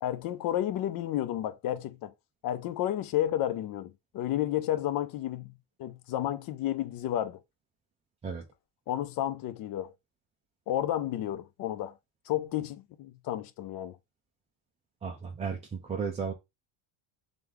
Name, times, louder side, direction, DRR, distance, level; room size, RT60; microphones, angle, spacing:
voice 1, 0.0-2.1 2.4-5.5 5.8-7.4 8.9-9.9 10.7-12.0 12.3-14.0, left 12 dB, 45° left, 0.5 m, -31 dB
voice 2, 15.0-15.6 15.8-16.3, right 6 dB, 15° right, 0.3 m, -33 dB
3.4 x 3.1 x 3.6 m
cardioid pair, 165°, 48 cm